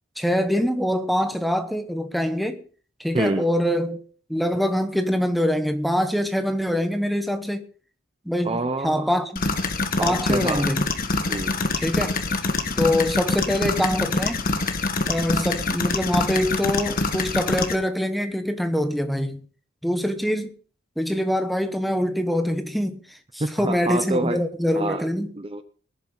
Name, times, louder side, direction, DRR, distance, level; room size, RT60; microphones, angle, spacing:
voice 1, 0.2-2.6 3.0-4.0 4.3-7.7 8.2-9.5 10.0-10.9 11.8-12.1 12.8-14.4 15.1-19.5 19.8-20.5 21.0-25.3, equal, ahead, 1.1 m, -24 dB
voice 2, 3.1-3.5 8.4-9.1 10.0-10.7 11.3-11.6 23.4-24.4 24.8-25.0 25.4-25.6, right 2 dB, 25° right, 0.7 m, -27 dB
sound 1, 9.4-17.7, left 3 dB, 45° left, 1.5 m, -25 dB
20.0 x 11.0 x 4.0 m
head